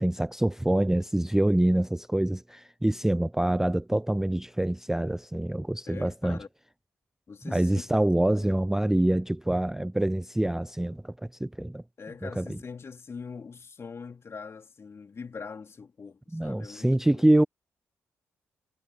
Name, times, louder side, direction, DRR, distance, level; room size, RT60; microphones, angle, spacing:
voice 1, 0.0-6.4 7.4-11.1 11.4-11.8 12.2-12.6 16.3-17.4, right 1 dB, 5° right, 0.3 m, -25 dB
voice 2, 5.9-6.5 7.3-7.7 8.4-8.5 12.0-17.3, left 5 dB, 45° left, 2.9 m, -42 dB
hypercardioid pair, 40°, 6 cm